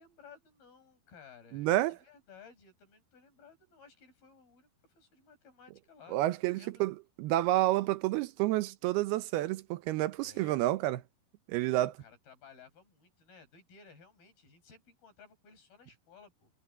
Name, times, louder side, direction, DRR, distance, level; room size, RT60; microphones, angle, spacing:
voice 1, 0.0-6.2 6.5-6.8 10.2-10.7 11.7-16.5, left 5 dB, 70° left, 7.2 m, -57 dB
voice 2, 1.5-2.0 6.1-11.0 11.5-11.9, right 16 dB, 85° right, 2.8 m, -29 dB
omnidirectional pair, 4.4 m